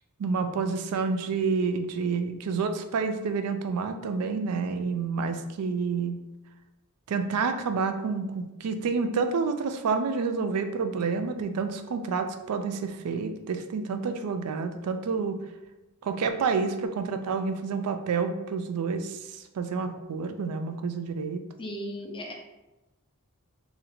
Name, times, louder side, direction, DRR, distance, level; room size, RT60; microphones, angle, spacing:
voice 1, 0.2-6.2 7.1-15.4 16.0-21.4, right 5 dB, 90° right, 8 dB, 0.4 m, -29 dB
voice 2, 21.6-22.3, equal, 25° left, -1 dB, 0.6 m, -36 dB
2.8 x 2.7 x 4.2 m, 1.0 s
head